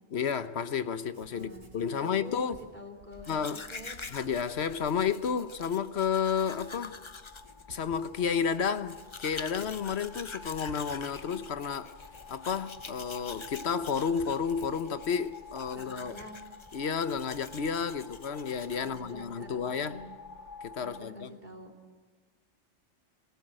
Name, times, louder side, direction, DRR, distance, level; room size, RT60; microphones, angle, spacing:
voice 1, 0.1-2.6 3.3-3.6 4.1-6.9 7.7-12.0 12.3-16.1 16.7-20.0 20.6-21.3, left 6 dB, 65° left, 1.3 m, -31 dB
Writing, 0.8-0.9 1.1-3.3 3.8-5.1 5.6-5.7 6.2-16.8 17.1-17.9, right 2 dB, 65° right, 3.9 m, -58 dB
voice 2, 1.3-4.0 15.7-16.4 18.7-20.1 20.8-21.7, equal, 40° right, 4.0 m, -47 dB
Domestic sounds home sounds, 3.1-19.2, left 4 dB, 30° left, 0.7 m, -47 dB
sound 1, 5.2-21.0, left 4 dB, 80° left, 1.6 m, -50 dB
27.5 x 18.0 x 7.6 m
omnidirectional pair, 1.2 m